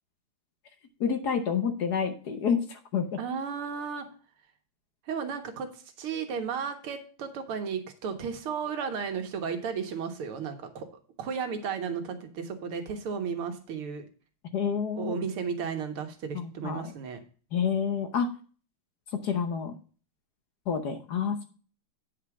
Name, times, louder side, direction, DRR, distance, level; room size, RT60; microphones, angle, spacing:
voice 1, 1.0-3.2 14.5-15.1 16.3-16.9 17.5-18.3 19.2-19.7 20.7-21.4, left 6 dB, 55° left, 8 dB, 1.3 m, -28 dB
voice 2, 3.2-4.1 5.1-5.7 6.0-10.9 11.2-14.1 15.0-17.2, right 6 dB, 80° right, 6 dB, 2.2 m, -34 dB
9.4 x 5.0 x 5.9 m, 0.39 s
omnidirectional pair, 2.4 m